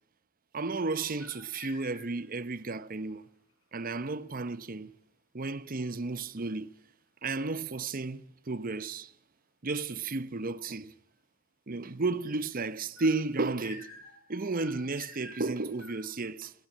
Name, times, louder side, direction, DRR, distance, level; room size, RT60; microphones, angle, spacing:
voice 1, 0.5-3.3 3.7-4.9 5.3-6.7 7.2-9.1 9.6-10.9 11.7-13.9 14.3-16.5, right 3 dB, 40° right, 0.8 m, -33 dB
sound 1, 1.0-2.4 13.0-16.1, left 2 dB, 65° left, 5.4 m, -50 dB
29.0 x 17.0 x 7.4 m
head